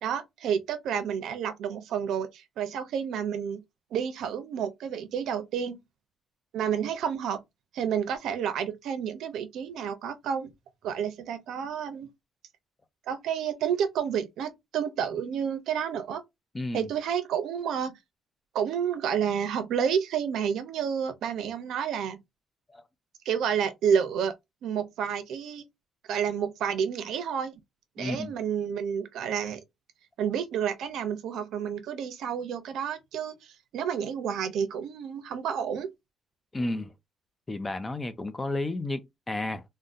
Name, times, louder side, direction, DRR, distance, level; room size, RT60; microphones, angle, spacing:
voice 1, 0.0-3.6 3.9-5.8 6.5-7.4 7.7-10.5 10.8-12.1 13.1-16.2 16.7-18.0 18.5-22.2 23.3-24.3 24.6-25.6 26.1-27.6 28.0-29.6 30.2-35.9, right 8 dB, 75° right, 0.6 m, -30 dB
voice 2, 16.5-16.9 22.7-22.8 28.0-28.3 36.5-36.9 37.5-39.6, left 2 dB, 15° left, 0.4 m, -32 dB
3.6 x 2.1 x 2.6 m
cardioid pair, 155°, 0 cm